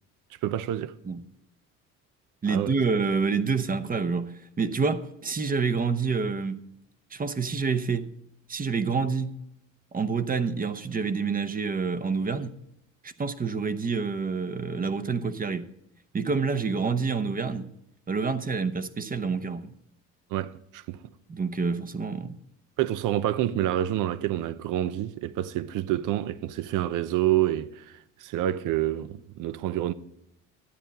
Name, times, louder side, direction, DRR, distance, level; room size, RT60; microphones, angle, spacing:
voice 1, 0.4-0.9 2.5-2.7 20.3-21.0 22.8-27.8 28.2-29.9, right 13 dB, 65° right, 0.7 m, -27 dB
voice 2, 2.4-6.6 7.1-8.1 8.5-9.4 9.9-12.5 13.0-15.7 16.1-17.7 18.1-19.7 21.3-22.4, right 5 dB, 25° right, 0.9 m, -28 dB
13.0 x 9.0 x 4.2 m
supercardioid pair, 80°, 33 cm